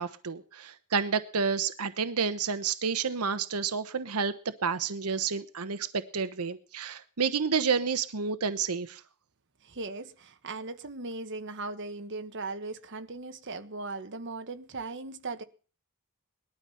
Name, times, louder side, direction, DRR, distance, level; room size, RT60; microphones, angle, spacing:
voice 1, 0.0-4.3 4.6-9.0, right 5 dB, 90° right, 1.0 m, -30 dB
voice 2, 9.6-15.4, right 3 dB, 55° right, 1.3 m, -38 dB
19.5 x 12.5 x 5.7 m
head